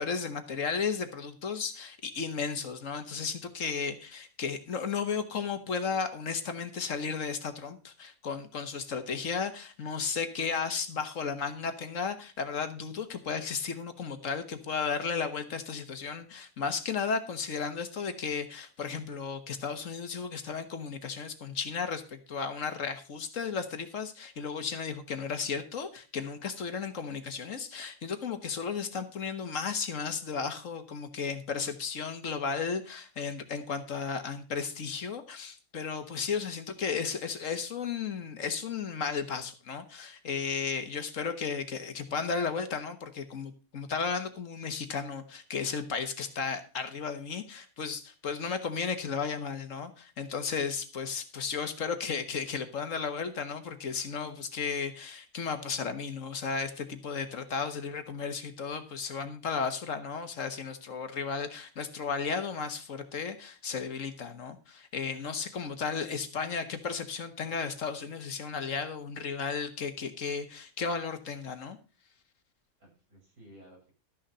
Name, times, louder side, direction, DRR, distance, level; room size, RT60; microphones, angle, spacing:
voice 1, 0.0-71.8, left 5 dB, 60° left, 9 dB, 1.6 m, -34 dB
voice 2, 72.8-73.9, right 1 dB, 90° right, -2 dB, 6.8 m, -56 dB
13.0 x 6.5 x 5.5 m, 0.34 s
omnidirectional pair, 1.5 m